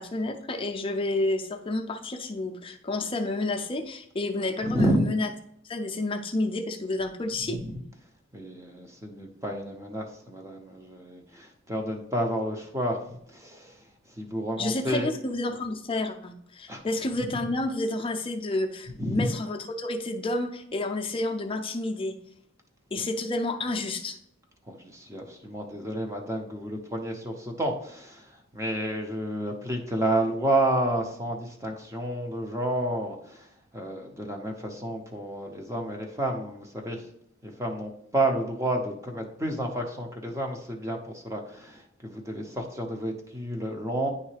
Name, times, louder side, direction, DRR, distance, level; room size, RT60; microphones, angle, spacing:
voice 1, 0.0-5.3 5.6-7.6 14.6-22.2 22.9-24.2, left 2 dB, 25° left, 4 dB, 0.5 m, -30 dB
voice 2, 4.6-5.0 7.5-7.8 8.3-13.7 14.2-15.1 16.7-16.8 19.0-19.3 24.7-28.2 28.5-33.5 33.7-37.0 37.4-44.1, right 1 dB, 15° right, 2 dB, 0.7 m, -30 dB
9.6 x 3.2 x 3.3 m, 0.72 s
head